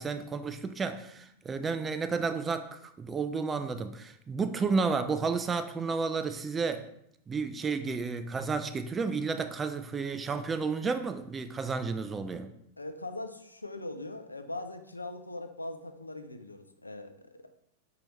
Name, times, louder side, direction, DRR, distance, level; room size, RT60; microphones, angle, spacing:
voice 1, 0.0-6.9 7.3-12.5, right 4 dB, 20° right, 0.3 m, -32 dB
voice 2, 12.8-17.5, left 2 dB, 85° left, 0.4 m, -41 dB
5.4 x 2.9 x 3.0 m
figure-of-eight pair, 90°, 0 cm